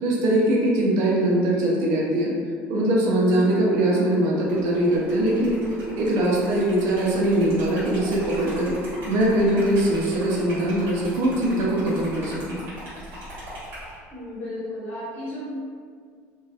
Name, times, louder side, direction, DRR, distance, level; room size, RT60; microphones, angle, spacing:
voice 1, 0.0-2.3 2.7-5.6 6.0-8.7 9.1-12.6, right 1 dB, 60° right, -3 dB, 0.4 m, -22 dB
sound 1, 3.3-10.1, equal, ahead, 1.1 m, -39 dB
Liquid, 4.4-13.9, equal, 35° right, 1.1 m, -39 dB
voice 2, 14.1-15.4, left 1 dB, 35° left, -10 dB, 1.1 m, -34 dB
2.7 x 2.3 x 2.3 m, 2.1 s
cardioid pair, 175°, 6 cm